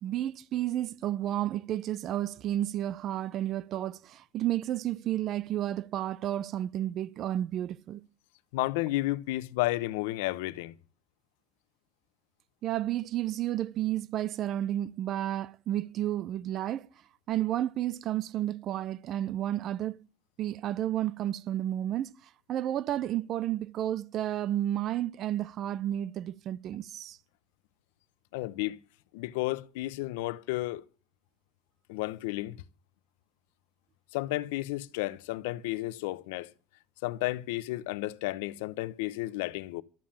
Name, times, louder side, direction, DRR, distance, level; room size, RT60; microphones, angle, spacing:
voice 1, 0.0-8.0 12.6-16.9 17.3-20.0 20.4-22.1 22.5-27.2, right 12 dB, 35° right, 0.6 m, -31 dB
voice 2, 8.5-10.7 28.3-28.8 29.1-30.8 31.9-32.6 34.1-36.5 37.0-39.8, left 18 dB, 90° left, 0.8 m, -32 dB
13.5 x 7.6 x 8.6 m
cardioid pair, 165°, 0 cm